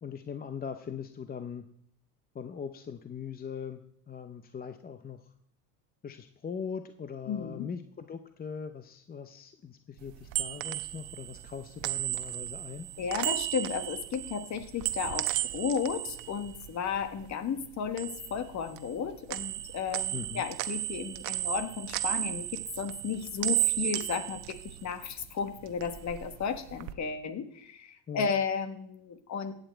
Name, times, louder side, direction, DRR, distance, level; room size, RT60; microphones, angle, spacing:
voice 1, 0.0-1.6 2.3-3.8 4.1-5.2 6.0-12.9 20.1-20.5 28.1-28.4, left 7 dB, 20° left, 9 dB, 0.7 m, -40 dB
voice 2, 7.3-7.7 13.0-29.6, left 6 dB, 35° left, 10 dB, 1.5 m, -34 dB
sound 1, 10.0-17.3 17.6-19.0 19.3-25.3 25.6-26.9, right 16 dB, 65° right, 1.0 m, -34 dB
15.5 x 9.0 x 4.5 m, 0.68 s
supercardioid pair, 100°, 46 cm